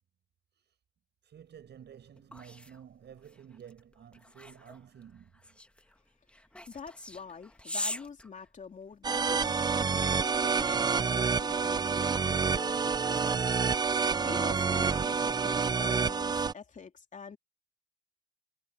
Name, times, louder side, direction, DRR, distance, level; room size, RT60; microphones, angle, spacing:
voice 1, 1.2-5.6, right 9 dB, 60° right, 7.1 m, -52 dB
sound 1, 1.6-9.2, left 1 dB, 5° left, 1.7 m, -43 dB
voice 2, 6.7-13.4 14.2-17.4, left 5 dB, 40° left, 3.1 m, -46 dB
sound 2, 9.0-16.5, right 5 dB, 20° right, 0.4 m, -28 dB
cardioid pair, 90°, 20 cm